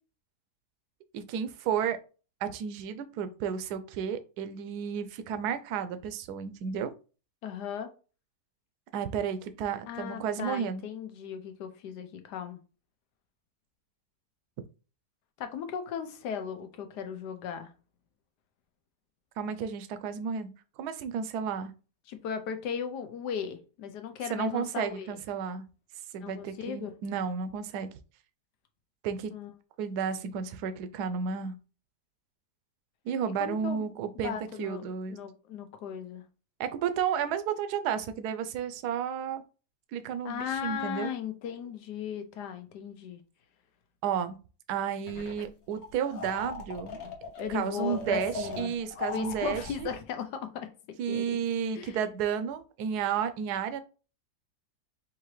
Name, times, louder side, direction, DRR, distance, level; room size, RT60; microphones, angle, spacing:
voice 1, 1.1-2.0 2.4-6.9 8.9-10.8 19.4-20.5 20.8-21.7 24.3-25.7 26.1-27.9 29.0-29.3 29.8-31.6 33.0-35.2 36.6-39.4 39.9-41.1 44.0-44.4 44.7-47.0 47.5-49.9 51.0-53.8, right 7 dB, 75° right, 10 dB, 1.1 m, -32 dB
voice 2, 7.4-7.9 9.9-12.6 15.4-17.7 22.1-25.2 26.2-27.0 29.3-29.5 33.4-33.9 34.2-36.2 40.2-43.2 47.4-48.7 49.1-50.7 51.1-51.4 51.7-52.0, left 8 dB, 80° left, 8 dB, 1.3 m, -37 dB
sound 1, 45.1-45.5 45.7-50.0, left 3 dB, 50° left, 0.9 m, -38 dB
4.8 x 2.8 x 3.1 m, 0.34 s
omnidirectional pair, 1.8 m